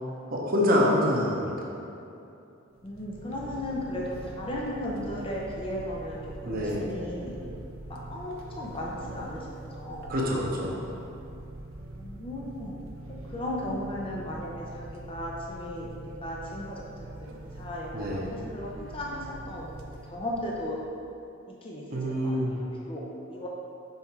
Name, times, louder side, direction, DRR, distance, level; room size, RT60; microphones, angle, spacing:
voice 1, 0.3-1.7 6.4-6.9 10.1-10.7 17.9-18.3 21.9-22.6, left 1 dB, 45° right, -3 dB, 1.0 m, -26 dB
sound 1, 2.7-21.0, right 1 dB, 85° right, 0.6 m, -43 dB
voice 2, 2.8-7.4 7.9-10.1 12.0-12.8 13.1-20.8 21.5-23.5, left 1 dB, 25° left, -3 dB, 0.6 m, -36 dB
5.7 x 4.3 x 4.6 m, 2.7 s
head